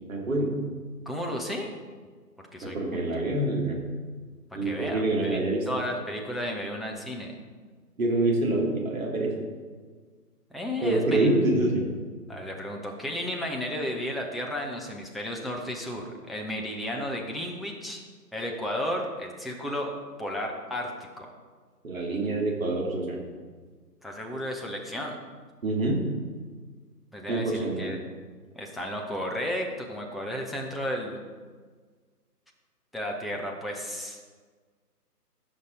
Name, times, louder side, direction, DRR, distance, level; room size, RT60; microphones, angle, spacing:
voice 1, 0.1-0.5 2.6-3.8 4.5-5.6 8.0-9.3 10.8-11.8 21.8-23.2 25.6-26.0 27.3-27.9, right 2 dB, 55° right, -1 dB, 3.0 m, -26 dB
voice 2, 1.1-1.7 2.5-3.0 4.6-5.4 5.7-7.4 10.5-11.3 12.3-18.0 18.3-19.9 20.2-21.3 24.0-25.2 27.1-28.0 28.5-31.2 32.9-34.2, left 1 dB, ahead, 0 dB, 0.4 m, -33 dB
16.0 x 6.3 x 3.9 m, 1.5 s
figure-of-eight pair, 155°, 48 cm